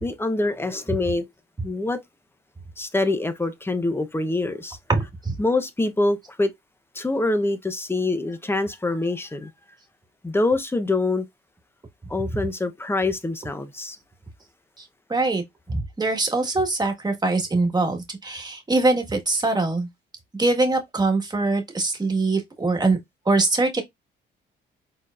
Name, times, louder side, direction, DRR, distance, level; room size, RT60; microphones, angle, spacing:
voice 1, 0.0-1.3 1.6-2.0 2.8-4.8 5.4-6.5 6.9-9.5 10.2-11.3 12.1-14.0, left 2 dB, 10° left, 0.8 m, -25 dB
voice 2, 4.9-5.3 15.1-19.9 20.3-23.0 23.2-23.8, right 3 dB, 20° right, 1.5 m, -23 dB
4.4 x 4.0 x 2.4 m
cardioid pair, 90°, 20 cm